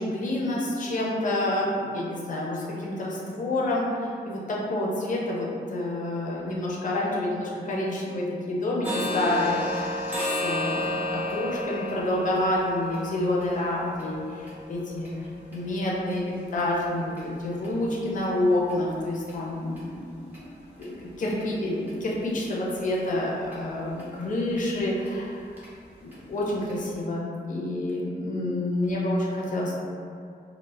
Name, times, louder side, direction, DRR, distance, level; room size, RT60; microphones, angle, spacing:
voice 1, 0.0-10.0 10.4-15.1 15.5-19.9 20.2-20.4 20.8-25.7 26.0-29.7, left 1 dB, 45° left, -4 dB, 0.5 m, -28 dB
sound 1, 8.8-16.6 17.1-17.2 17.6-17.8 18.2-18.3 18.7-18.8 19.3-19.4 19.8-19.9 20.3-20.4 20.8-20.9 21.4-21.5 21.9-22.0 22.5-22.6 22.9-23.0 23.5-23.6 24.0-24.1 24.6-24.7 25.1-25.2 25.6-25.7 26.1-26.2 26.7-26.8, left 1 dB, 10° right, 0.6 m, -33 dB
2.1 x 2.0 x 3.2 m, 2.4 s
wide cardioid pair, 140°, 18 cm